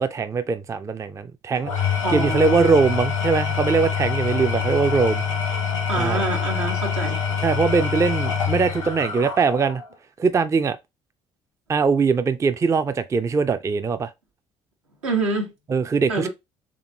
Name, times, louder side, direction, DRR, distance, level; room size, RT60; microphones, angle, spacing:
voice 1, 0.0-1.7 2.1-5.2 6.0-6.2 7.4-9.8 10.2-10.8 11.7-14.1 15.7-16.3, right 5 dB, 20° right, 0.4 m, -21 dB
Engine / Tools, 1.6-9.9, left 6 dB, 90° left, 0.9 m, -25 dB
voice 2, 2.0-2.8 5.9-7.2 15.0-15.5 16.1-16.3, right 3 dB, 80° right, 1.1 m, -26 dB
3.7 x 3.5 x 2.8 m
figure-of-eight pair, 50°, 16 cm